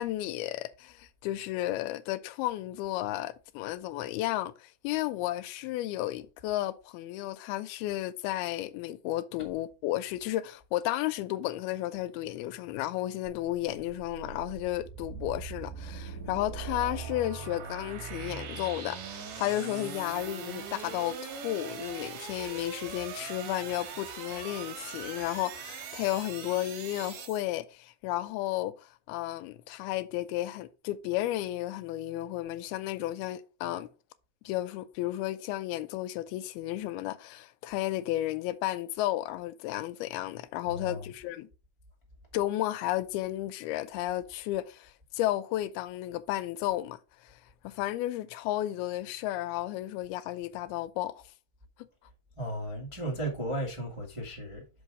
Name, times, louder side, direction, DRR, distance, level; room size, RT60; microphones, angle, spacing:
voice 1, 0.0-33.9 34.5-41.5 42.3-51.2, left 15 dB, 85° left, 2.5 m, -33 dB
sound 1, 13.3-27.4, right 6 dB, 65° right, 2.8 m, -41 dB
voice 2, 40.6-41.0 52.4-54.6, right 1 dB, 25° right, 0.6 m, -35 dB
6.3 x 5.2 x 4.8 m
omnidirectional pair, 4.4 m